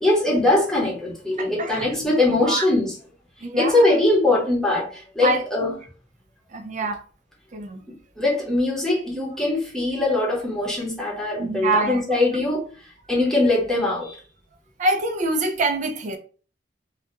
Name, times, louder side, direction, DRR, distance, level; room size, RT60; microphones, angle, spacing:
voice 1, 0.0-2.9 3.6-5.7 8.2-12.7 13.1-14.2, left 2 dB, 5° left, 0.8 m, -21 dB
voice 2, 1.4-2.1 2.4-2.7 3.4-3.9 5.2-5.7 6.5-7.0 7.5-7.8 11.4-12.2 14.8-16.2, right 2 dB, 45° right, 0.4 m, -25 dB
2.3 x 2.2 x 2.8 m
head